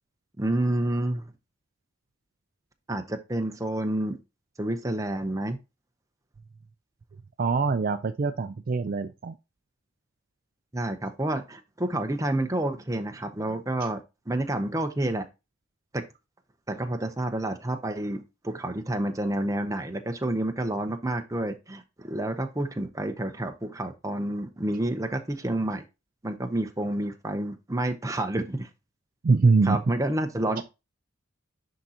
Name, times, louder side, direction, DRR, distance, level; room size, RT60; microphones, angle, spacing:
voice 1, 0.4-1.3 2.9-4.2 4.6-5.6 10.7-14.0 14.3-15.3 15.9-16.0 16.7-25.8 26.2-28.7 29.6-30.6, right 1 dB, 15° right, 0.7 m, -29 dB
voice 2, 7.4-9.4 29.2-29.8, right 4 dB, 45° right, 0.4 m, -23 dB
10.5 x 3.8 x 2.8 m
head